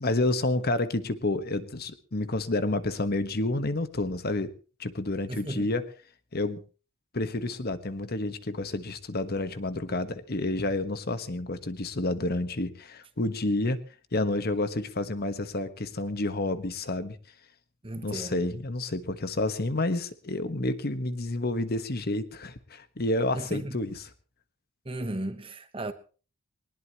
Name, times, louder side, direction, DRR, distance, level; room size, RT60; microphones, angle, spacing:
voice 1, 0.0-4.5 4.8-5.9 6.3-6.6 7.1-13.8 14.1-17.2 18.0-23.9, left 2 dB, 45° left, 1.2 m, -29 dB
voice 2, 5.3-5.7 17.8-18.5 23.3-23.8 24.8-25.9, right 1 dB, 25° right, 1.1 m, -35 dB
21.5 x 19.5 x 3.0 m
head